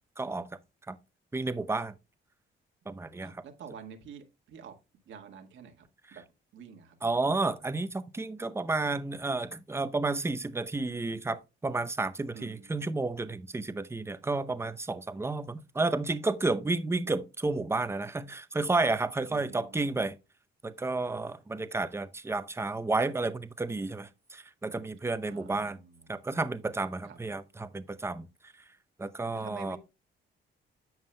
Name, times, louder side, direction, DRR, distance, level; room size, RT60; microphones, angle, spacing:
voice 1, 0.2-0.5 0.9-1.0 1.3-1.9 2.9-3.4 6.1-6.2 7.0-20.2 20.6-25.8 26.1-28.3 29.0-29.8, right 3 dB, 15° right, 0.6 m, -31 dB
voice 2, 3.2-4.8 5.1-5.8 6.1-6.2 6.5-6.9 12.3-12.8 19.3-19.9 25.3-26.1 27.0-27.2 29.3-29.8, right 7 dB, 75° right, 1.6 m, -48 dB
11.0 x 7.3 x 2.2 m
cardioid pair, 90°, 20 cm